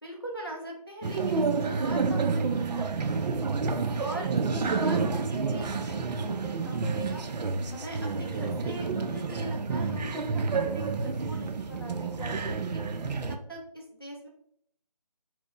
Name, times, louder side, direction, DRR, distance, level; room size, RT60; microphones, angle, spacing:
voice 1, 0.0-2.4 2.8-3.4 4.0-7.2 7.7-12.8 13.5-14.3, right 1 dB, 35° left, -1 dB, 0.4 m, -41 dB
sound 1, 1.0-13.4, right 4 dB, 90° right, 0.4 m, -29 dB
4.4 x 2.0 x 2.9 m, 0.70 s
figure-of-eight pair, 180°, 21 cm